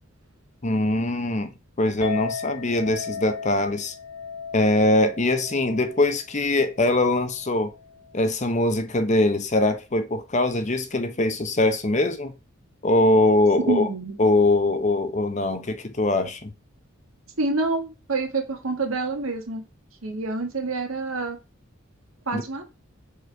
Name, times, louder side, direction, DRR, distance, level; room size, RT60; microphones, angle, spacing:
voice 1, 0.6-1.5 1.8-3.9 4.5-7.7 8.1-12.3 12.8-13.9 14.2-16.5 22.3-22.4, left 2 dB, 35° left, 0.8 m, -22 dB
Chink clink, 2.0-8.3, left 5 dB, 80° left, 2.3 m, -37 dB
voice 2, 13.7-14.1 17.4-19.6 20.0-21.4 22.3-22.6, right 3 dB, 85° right, 1.7 m, -27 dB
5.1 x 4.1 x 4.7 m
head